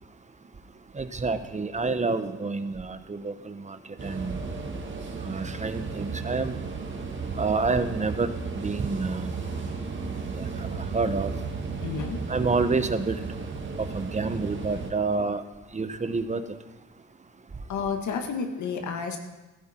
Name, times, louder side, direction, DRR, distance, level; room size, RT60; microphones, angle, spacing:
voice 1, 0.9-3.8 4.0-4.5 5.2-6.6 7.4-9.4 10.4-10.7 10.9-11.3 12.3-13.2 13.9-15.4 15.7-16.4, right 4 dB, 25° right, 10 dB, 1.1 m, -28 dB
sound 1, 4.0-14.9, right 4 dB, 40° right, 2.3 m, -34 dB
voice 2, 11.8-12.2 17.7-19.2, left 5 dB, 70° left, 4 dB, 2.0 m, -30 dB
15.0 x 14.0 x 4.6 m, 1.2 s
cardioid pair, 90°, 30 cm